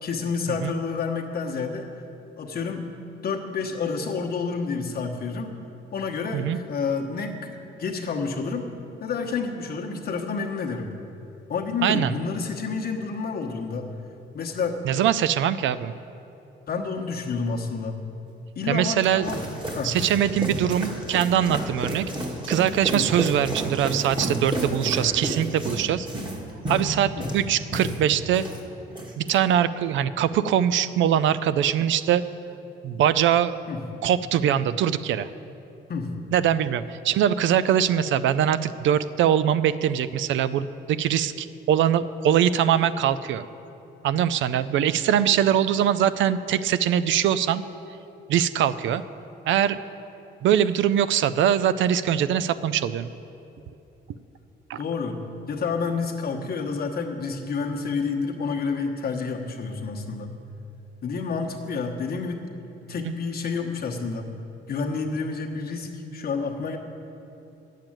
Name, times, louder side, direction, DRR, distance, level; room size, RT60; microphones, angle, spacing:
voice 1, 0.0-1.9 2.4-2.9 3.2-5.5 5.9-8.6 9.0-10.9 11.5-13.8 14.3-14.8 16.7-18.0 18.6-19.4 19.7-20.0 22.9-23.0 27.2-27.3 33.7-33.8 35.9-36.2 54.8-60.3 61.0-62.4 62.9-64.3 64.7-66.8, left 4 dB, 50° left, 1 dB, 1.1 m, -29 dB
voice 2, 11.8-12.1 14.8-15.9 18.7-19.3 19.8-22.1 22.5-26.1 26.7-28.4 29.2-32.2 32.8-33.6 34.0-35.3 36.3-43.4 44.0-47.6 48.3-49.0 49.5-49.8 50.4-53.1 54.7-54.8, right 10 dB, 75° right, 14 dB, 0.4 m, -22 dB
sound 1, 18.7-28.6 28.9-29.3, right 1 dB, 25° right, 1.8 m, -31 dB
9.0 x 7.5 x 8.9 m, 2.9 s
cardioid pair, 90°, 20 cm